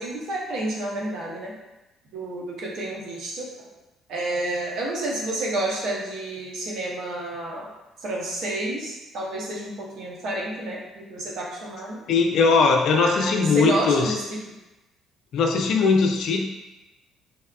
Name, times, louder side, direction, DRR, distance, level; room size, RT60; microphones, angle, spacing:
voice 1, 0.0-1.5 2.1-3.7 4.1-7.7 8.0-12.0 12.9-14.2, right 1 dB, 65° right, -3 dB, 0.7 m, -30 dB
voice 2, 12.1-14.1 15.3-16.5, left 4 dB, 65° left, 2 dB, 0.4 m, -20 dB
3.4 x 2.2 x 2.2 m, 1.0 s
hypercardioid pair, 50°, 0 cm